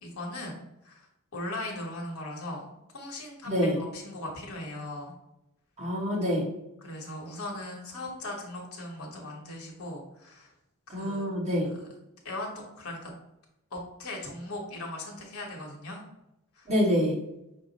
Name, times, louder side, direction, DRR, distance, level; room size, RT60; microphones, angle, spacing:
voice 1, 0.0-0.6 0.8-1.1 1.3-2.7 2.9-5.1 6.8-10.5 10.9-11.9 12.2-13.1 13.7-16.0 16.5-16.7, left 1 dB, 70° left, 0 dB, 1.0 m, -39 dB
voice 2, 3.4-3.8 5.8-6.5 10.9-11.7 16.7-17.2, equal, 30° right, -5 dB, 1.2 m, -26 dB
5.5 x 2.0 x 4.0 m, 0.86 s
head